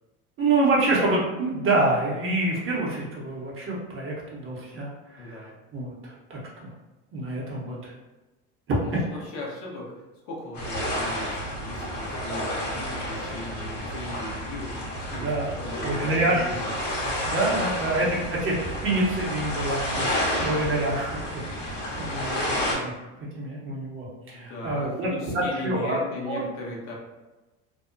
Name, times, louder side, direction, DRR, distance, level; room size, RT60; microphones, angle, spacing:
voice 1, 0.4-6.7 7.1-7.9 8.7-9.0 15.1-15.5 15.8-16.5 17.0-22.9 23.3-26.0 26.3-26.4, right 2 dB, 35° right, -4 dB, 0.9 m, -27 dB
voice 2, 5.2-5.5 7.7-7.8 8.8-16.6 17.8-18.1 24.3-26.9, left 2 dB, 70° left, -2 dB, 1.0 m, -38 dB
sound 1, 10.5-22.7, equal, 50° left, 1.1 m, -30 dB
2.7 x 2.3 x 2.5 m, 1.1 s
supercardioid pair, 115°, 38 cm